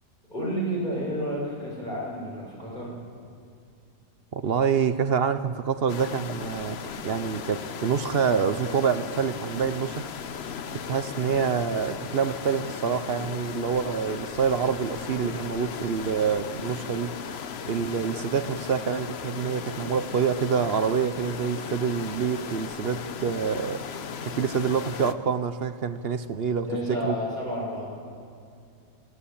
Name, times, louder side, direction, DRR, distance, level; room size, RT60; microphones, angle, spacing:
voice 1, 0.3-3.0 26.7-27.8, equal, 25° left, 6.4 m, -30 dB
voice 2, 4.3-6.8 7.0-10.1 10.9-17.2 17.7-23.9 24.2-26.7 27.0-27.1, right 6 dB, 55° right, 0.7 m, -26 dB
sound 1, 5.9-25.1, left 7 dB, 50° left, 0.8 m, -36 dB
27.5 x 16.5 x 8.6 m
omnidirectional pair, 1.8 m